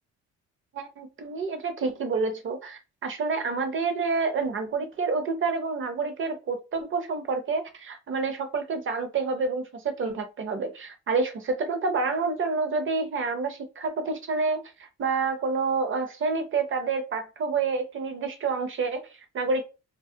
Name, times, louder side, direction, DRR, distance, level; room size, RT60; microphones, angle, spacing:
voice 1, 0.7-19.6, right 4 dB, 40° right, 0.6 m, -28 dB
2.3 x 2.0 x 2.7 m
cardioid pair, 90°, 30 cm